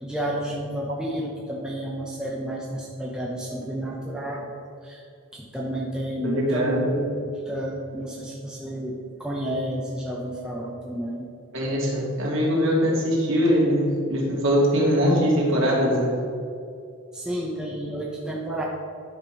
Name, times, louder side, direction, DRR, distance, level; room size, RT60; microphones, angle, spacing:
voice 1, 0.0-5.0 5.3-11.3 17.1-18.6, right 1 dB, 5° right, -3 dB, 0.8 m, -31 dB
voice 2, 6.2-6.8 11.5-16.1, equal, 55° right, -4 dB, 2.3 m, -22 dB
10.5 x 5.9 x 4.6 m, 2.4 s
head